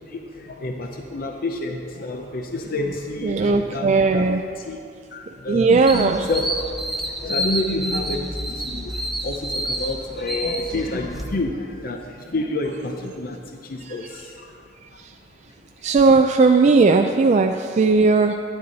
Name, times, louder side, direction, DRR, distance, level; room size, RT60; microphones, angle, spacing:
voice 1, 0.1-4.2 4.6-4.8 5.1-6.4 7.2-14.5 16.7-16.8, left 2 dB, 50° left, 3 dB, 0.6 m, -29 dB
voice 2, 3.2-4.4 5.5-6.3 13.8-14.2 15.0-15.1 15.8-18.3, right 4 dB, 40° right, 4 dB, 0.3 m, -17 dB
sound 1, 5.9-11.2, right 1 dB, ahead, 0.8 m, -29 dB
10.0 x 9.5 x 4.0 m, 2.3 s
head